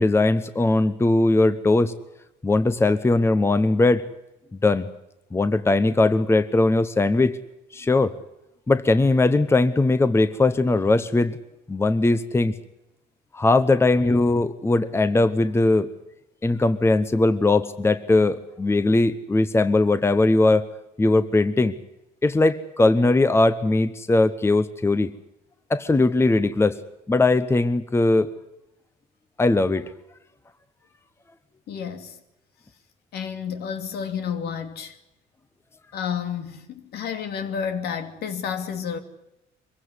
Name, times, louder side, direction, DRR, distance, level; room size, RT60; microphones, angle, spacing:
voice 1, 0.0-1.9 2.4-4.0 4.6-4.9 5.3-7.4 7.7-8.1 8.7-11.4 11.7-12.5 13.3-15.9 16.4-20.7 21.0-21.8 22.2-25.1 25.7-26.8 27.1-28.3 29.4-29.9, left 2 dB, 15° left, 1.0 m, -20 dB
voice 2, 31.7-32.2 33.1-35.0 35.9-39.0, left 7 dB, 70° left, 2.7 m, -30 dB
24.0 x 16.0 x 9.8 m
cardioid pair, 110°, 17 cm